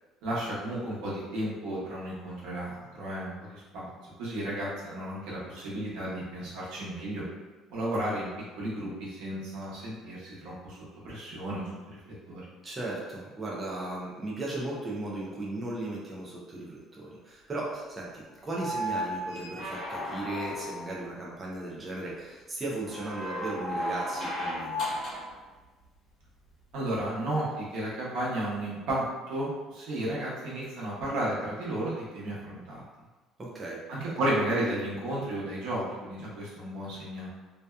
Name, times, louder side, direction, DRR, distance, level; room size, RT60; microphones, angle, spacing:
voice 1, 0.2-3.9 4.2-7.2 7.7-8.3 8.6-10.8 11.0-11.8 12.3-12.4 26.7-32.9 33.9-37.3, right 1 dB, 90° right, -7 dB, 0.9 m, -33 dB
voice 2, 12.6-24.8 33.4-34.1, right 2 dB, 20° right, -4 dB, 0.4 m, -36 dB
sound 1, 18.5-21.0 22.8-25.3 27.0-27.1, equal, 55° left, 0.9 m, -34 dB
2.6 x 2.2 x 2.2 m, 1.3 s
cardioid pair, 155°, 0 cm